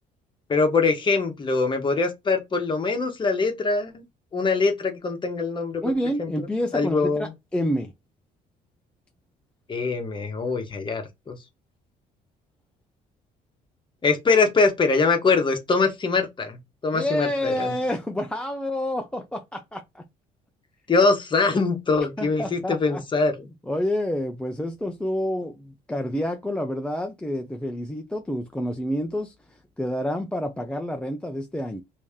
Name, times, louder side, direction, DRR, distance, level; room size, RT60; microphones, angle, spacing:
voice 1, 0.5-4.0 4.3-5.8 6.2-6.5 6.7-7.3 9.7-11.4 14.0-16.6 16.8-17.7 20.9-23.5, left 4 dB, 30° left, 1.1 m, -23 dB
voice 2, 5.8-7.9 16.9-20.0 22.2-23.3 23.7-29.3 29.8-31.8, left 1 dB, 5° left, 0.4 m, -28 dB
3.1 x 2.7 x 3.6 m
cardioid pair, 110°, 17 cm